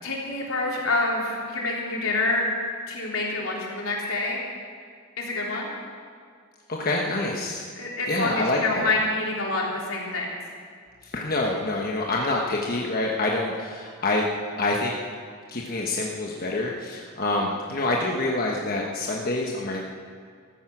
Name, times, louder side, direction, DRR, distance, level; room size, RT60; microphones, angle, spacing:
voice 1, 0.0-2.5 2.9-4.4 5.2-5.7 7.8-10.3, left 2 dB, 80° left, -3 dB, 3.6 m, -27 dB
voice 2, 6.7-7.7 8.1-8.9 11.0-14.3 14.6-15.0 15.5-19.9, left 2 dB, 45° left, -1 dB, 1.2 m, -26 dB
15.0 x 14.0 x 6.1 m, 2.1 s
head